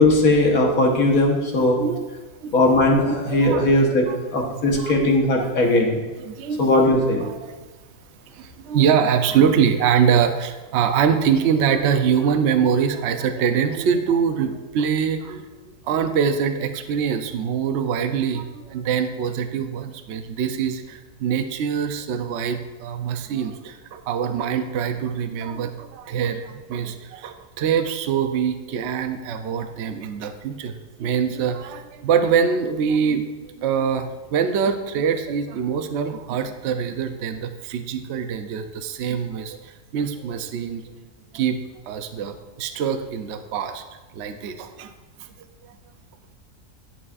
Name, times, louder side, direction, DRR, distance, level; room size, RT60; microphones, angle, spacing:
voice 1, 0.0-1.8 2.5-4.1 4.3-6.0 6.6-7.2, left 2 dB, 60° left, 0 dB, 1.6 m, -18 dB
voice 2, 2.4-2.8 3.3-3.6 4.1-4.2 4.5-5.7 6.2-6.8 7.2-7.6 8.3-15.4 15.8-30.7 31.0-40.8 41.3-41.6 41.9-43.8 44.1-44.9 45.2-45.3, right 7 dB, 70° right, 7 dB, 0.6 m, -24 dB
11.0 x 7.1 x 2.4 m, 1.2 s
omnidirectional pair, 1.7 m